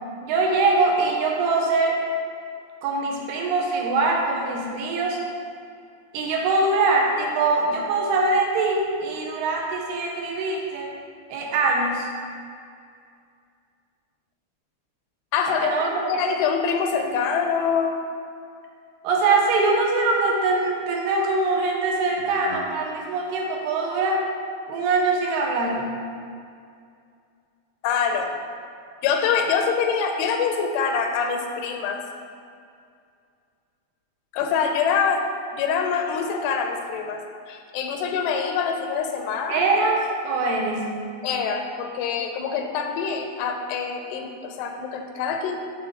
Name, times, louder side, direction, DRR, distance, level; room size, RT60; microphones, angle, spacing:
voice 1, 0.2-2.0 2.8-5.2 6.1-10.9 11.3-12.1 15.5-15.9 19.0-24.2 24.7-25.9 39.5-40.9, right 3 dB, 80° right, -1 dB, 3.0 m, -23 dB
voice 2, 15.3-18.0 22.5-22.6 27.8-28.3 29.0-32.0 34.3-35.2 35.5-39.7 41.2-45.6, left 6 dB, 85° left, 4 dB, 2.8 m, -25 dB
7.9 x 3.7 x 6.5 m, 2.3 s
omnidirectional pair, 4.6 m